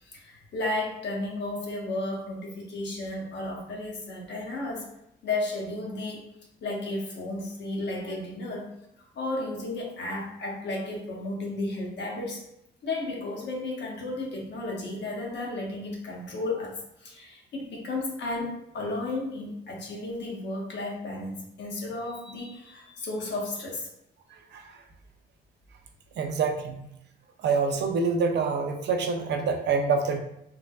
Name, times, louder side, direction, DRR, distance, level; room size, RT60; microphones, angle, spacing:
voice 1, 0.0-4.9 5.2-6.3 6.6-8.7 9.0-12.4 12.8-23.9, left 2 dB, 60° left, -1 dB, 0.9 m, -33 dB
voice 2, 24.3-24.8 26.2-26.8 27.4-30.2, right 4 dB, 60° right, 5 dB, 0.5 m, -26 dB
3.2 x 2.1 x 2.3 m, 0.81 s
cardioid pair, 90°, 20 cm